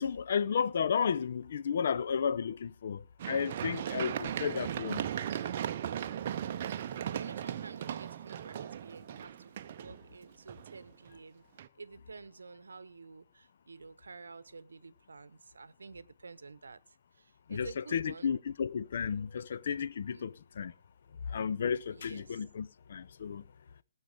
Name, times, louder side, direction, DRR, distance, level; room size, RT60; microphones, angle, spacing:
voice 1, 0.0-5.0 17.5-20.7 21.3-23.4, left 7 dB, 45° left, 0.7 m, -33 dB
Run, 3.2-11.1 11.6-11.7, right 10 dB, 35° right, 0.7 m, -37 dB
voice 2, 4.7-5.1 6.7-11.4 11.8-16.8 17.1-18.3 19.3-19.5 20.1-20.2 21.9-22.4, right 4 dB, 60° right, 0.9 m, -50 dB
19.0 x 8.1 x 5.0 m
figure-of-eight pair, 140°, 0 cm